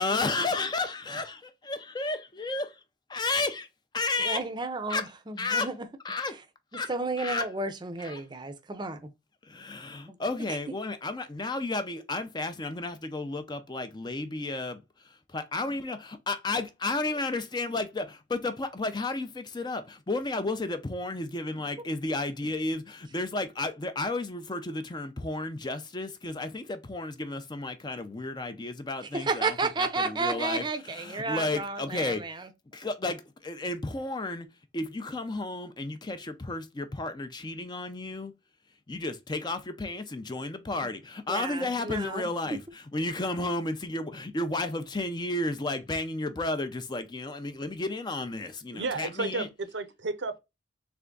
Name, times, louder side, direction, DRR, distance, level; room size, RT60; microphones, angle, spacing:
voice 1, 0.0-2.8 3.1-3.7 3.9-4.4 4.9-5.1 5.4-5.7 6.0-6.4 6.7-6.9 7.2-7.5 8.0-8.2 9.4-32.2 32.7-34.5 34.7-38.3 38.9-49.5, left 2 dB, 25° left, 0.5 m, -32 dB
voice 2, 4.2-5.7 6.7-9.1 29.1-32.5 40.8-40.9 41.3-42.3, right 3 dB, 25° right, 0.6 m, -32 dB
voice 3, 48.7-50.4, right 3 dB, 80° right, 0.7 m, -32 dB
3.5 x 3.3 x 3.8 m
head